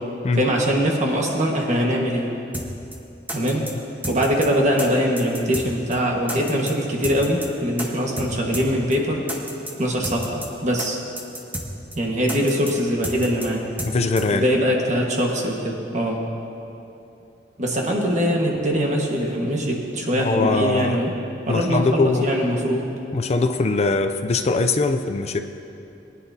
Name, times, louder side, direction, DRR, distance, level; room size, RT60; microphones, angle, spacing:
voice 1, 0.4-2.3 3.3-3.7 4.0-9.2 9.8-11.0 11.9-13.7 14.3-16.3 17.6-21.1 21.5-22.9, equal, 45° right, 0 dB, 1.5 m, -22 dB
sound 1, 2.5-2.7 2.9-3.0 3.3-3.7 4.0-4.5 4.8-4.9 5.2-5.7 5.9-6.0 6.3-6.7 7.0-7.5 7.8-7.9 8.2-8.3 8.5-8.7 8.9-9.0 9.3-9.7 10.0-10.5 10.8-10.9 11.2-11.7 11.9-12.0 12.3-12.7 13.0-13.5 13.8-13.9 14.2-14.3, equal, 10° right, 1.1 m, -30 dB
voice 2, 13.8-14.5 20.2-21.0 21.5-22.3 23.1-25.4, left 3 dB, 35° left, 8 dB, 0.4 m, -21 dB
20.0 x 9.9 x 2.7 m, 2.8 s
head